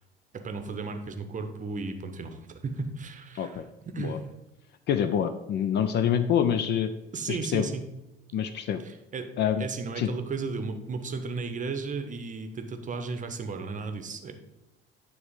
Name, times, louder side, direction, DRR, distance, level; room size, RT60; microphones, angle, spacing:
voice 1, 0.3-4.2 7.1-7.8 8.8-9.3 9.6-14.3, right 4 dB, 25° right, 7 dB, 0.9 m, -35 dB
voice 2, 3.3-3.6 4.0-4.2 4.9-6.9 7.3-7.7 8.3-8.8 9.4-9.7 10.0-10.1, left 9 dB, 35° left, 11 dB, 0.4 m, -26 dB
9.5 x 3.3 x 5.1 m, 0.96 s
figure-of-eight pair, 60°, 30 cm